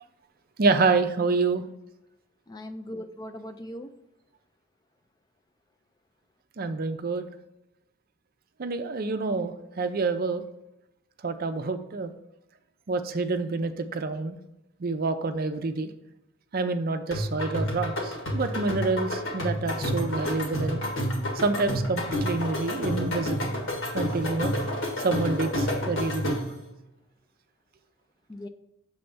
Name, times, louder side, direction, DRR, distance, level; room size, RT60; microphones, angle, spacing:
voice 1, 0.6-1.6 6.6-7.3 8.6-10.4 11.2-12.1 12.9-14.4 14.8-15.9 16.5-20.8 21.4-23.5 23.9-24.5 25.0-26.4, right 3 dB, 45° right, 9 dB, 0.5 m, -27 dB
voice 2, 2.5-3.9 28.3-28.5, left 1 dB, 20° left, 8 dB, 0.3 m, -39 dB
sound 1, 17.1-26.6, equal, 70° left, 1.7 m, -30 dB
6.9 x 3.3 x 5.2 m, 0.88 s
head